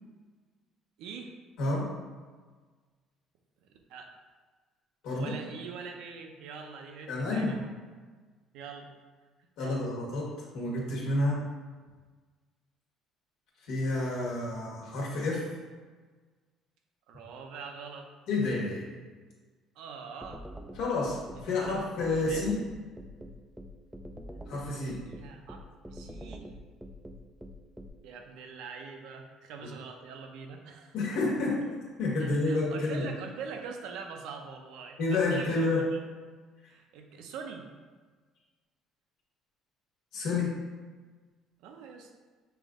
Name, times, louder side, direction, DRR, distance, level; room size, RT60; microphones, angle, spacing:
voice 1, 1.0-1.3 3.6-4.1 5.1-7.7 8.5-8.9 9.6-9.8 17.1-18.1 19.8-20.4 21.4-21.8 22.3-22.5 25.1-26.5 28.0-30.9 32.2-36.0 36.7-37.6 41.6-42.1, right 5 dB, 80° right, 3 dB, 0.6 m, -43 dB
voice 2, 1.6-1.9 5.0-5.3 7.1-7.5 9.6-11.4 13.6-15.5 18.3-18.8 20.7-22.6 24.5-25.0 30.9-31.6 32.0-33.1 35.0-35.8 40.1-40.5, left 2 dB, 75° left, -4 dB, 1.4 m, -29 dB
sound 1, 20.2-27.9, equal, 5° right, 0.3 m, -44 dB
5.6 x 2.6 x 3.6 m, 1.4 s
cardioid pair, 125°, 0 cm